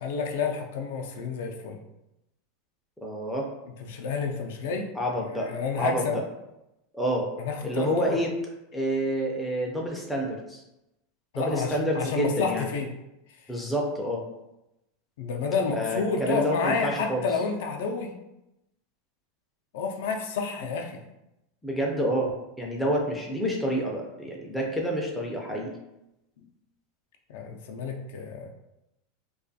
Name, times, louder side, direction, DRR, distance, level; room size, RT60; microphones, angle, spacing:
voice 1, 0.0-1.8 3.8-4.9 5.1-6.2 7.4-8.2 11.3-12.9 15.2-18.1 19.7-21.0 27.3-28.5, left 5 dB, 70° left, 2 dB, 0.4 m, -30 dB
voice 2, 3.0-3.5 5.0-5.5 5.8-6.2 6.9-7.3 7.6-8.3 8.7-10.6 11.4-12.7 13.5-14.2 15.7-17.3 21.6-25.7, equal, 5° left, -2 dB, 0.4 m, -28 dB
2.3 x 2.3 x 2.6 m, 0.90 s
supercardioid pair, 160°, 0 cm